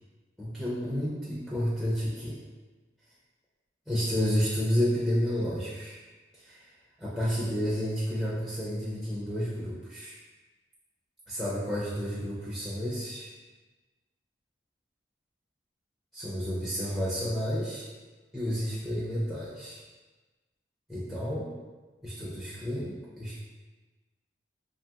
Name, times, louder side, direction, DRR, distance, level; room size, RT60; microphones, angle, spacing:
voice 1, 0.4-2.4 3.9-6.0 6.3-6.7 7.0-10.1 11.3-13.3 16.1-17.9 18.3-19.8 20.9-21.5 22.0-23.4, equal, ahead, -9 dB, 0.4 m, -31 dB
2.8 x 2.7 x 2.3 m, 1.3 s
head